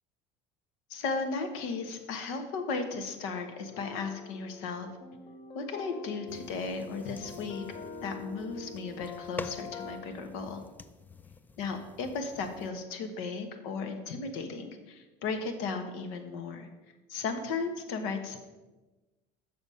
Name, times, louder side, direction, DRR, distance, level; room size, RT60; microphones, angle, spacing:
voice 1, 0.9-4.9 5.5-7.6 8.0-10.6 11.6-16.7 17.1-18.4, left 4 dB, 80° left, 6 dB, 1.2 m, -35 dB
sound 1, 3.7-10.0, left 5 dB, 30° left, 0.9 m, -45 dB
sound 2, 6.3-12.7, left 3 dB, 10° left, 0.3 m, -48 dB
6.8 x 6.1 x 5.5 m, 1.2 s
cardioid pair, 120°, 16 cm